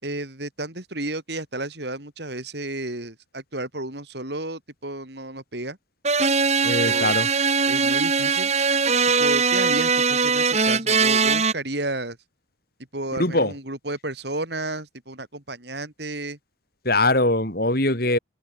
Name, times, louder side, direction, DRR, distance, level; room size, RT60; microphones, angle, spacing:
voice 1, 0.0-5.8 6.8-7.2 7.6-8.5 9.2-12.2 12.9-16.4, right 2 dB, 60° right, 4.8 m, -32 dB
sound 1, 6.0-11.5, right 5 dB, 35° right, 3.8 m, -21 dB
voice 2, 6.6-7.3 13.1-13.5 16.8-18.2, left 2 dB, 50° left, 7.3 m, -22 dB
head